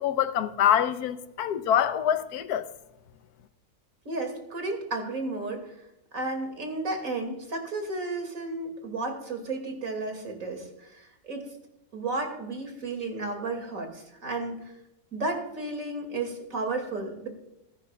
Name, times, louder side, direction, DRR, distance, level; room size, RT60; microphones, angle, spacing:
voice 1, 0.0-2.7, left 9 dB, 85° left, 1.3 m, -25 dB
voice 2, 4.1-5.7 6.1-11.5 11.9-14.6 15.1-17.3, right 2 dB, 60° right, 2.7 m, -33 dB
15.0 x 14.0 x 2.3 m
omnidirectional pair, 1.6 m